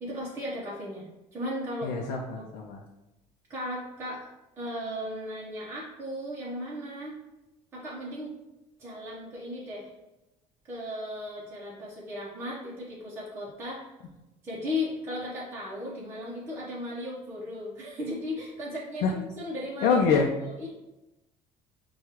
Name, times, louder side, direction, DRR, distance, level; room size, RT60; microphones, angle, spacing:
voice 1, 0.0-1.9 2.4-2.5 3.5-4.3 4.6-7.2 7.7-8.3 8.8-9.9 10.6-13.9 14.4-20.7, left 1 dB, 15° right, -7 dB, 0.7 m, -36 dB
voice 2, 1.8-2.8 19.0-19.1 19.8-20.3, left 5 dB, 85° left, 1 dB, 0.5 m, -25 dB
6.2 x 2.3 x 2.9 m, 0.99 s
cardioid pair, 180°, 14 cm